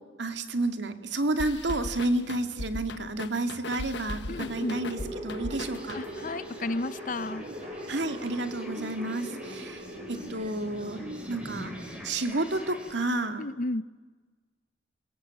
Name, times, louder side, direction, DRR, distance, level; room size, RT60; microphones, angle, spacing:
voice 1, 0.2-6.0 7.9-11.0 11.3-11.7 12.0-13.4, right 2 dB, 85° right, 7 dB, 2.3 m, -30 dB
sound 1, 1.4-6.4, left 2 dB, 80° left, 1.2 m, -39 dB
voice 2, 4.3-4.8 5.9-7.4 13.4-13.8, left 2 dB, 45° left, 16 dB, 0.7 m, -32 dB
sound 2, 4.3-12.1, equal, 40° right, 5.2 m, -40 dB
sound 3, 5.5-12.9, equal, 5° right, 4.3 m, -49 dB
28.0 x 21.5 x 8.9 m, 1.3 s
head